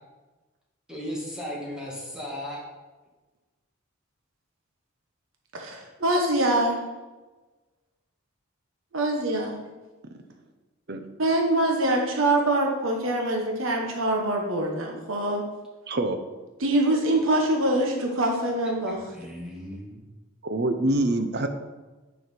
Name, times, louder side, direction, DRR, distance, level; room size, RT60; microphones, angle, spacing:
voice 1, 0.9-2.6 19.1-20.0, equal, 5° right, -5 dB, 2.0 m, -36 dB
voice 2, 5.5-6.8 8.9-9.6 11.2-15.4 16.6-19.0, right 1 dB, 75° right, 1 dB, 1.2 m, -24 dB
voice 3, 15.9-16.2 20.4-21.5, right 1 dB, 50° right, 7 dB, 0.8 m, -25 dB
9.4 x 5.8 x 4.5 m, 1.2 s
head